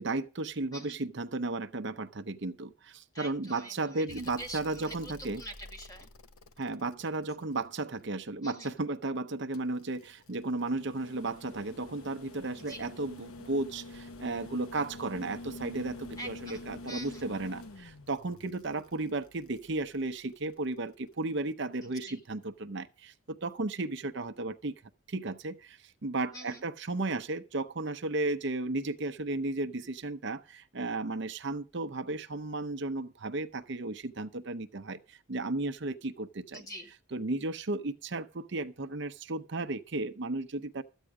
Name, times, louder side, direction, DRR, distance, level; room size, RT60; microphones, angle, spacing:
voice 1, 0.0-1.9 2.4-2.5 3.2-5.4 6.6-7.6 8.1-9.2 9.5-10.0 10.3-12.2 12.4-13.1 13.5-13.8 14.2-15.9 16.2-17.6 18.1-18.3 18.6-19.2 19.7-20.1 20.4-20.9 21.2-22.4 22.7-22.8 23.4-23.9 24.2-24.7 25.1-25.5 26.0-29.7 30.0-30.4 30.8-33.1 33.3-35.0 35.3-35.9 37.1-37.8 38.1-38.2 38.5-38.6 38.9-40.4 40.8-40.9, right 2 dB, 55° right, 0.7 m, -33 dB
voice 2, 3.1-6.1 8.4-8.8 12.6-12.8 16.2-17.3 21.8-22.2 26.3-26.6 36.5-36.9, equal, 15° left, 2.2 m, -45 dB
sound 1, 4.1-8.3 9.5-20.7 22.3-22.4, left 2 dB, 85° left, 1.0 m, -48 dB
13.5 x 9.0 x 4.8 m
head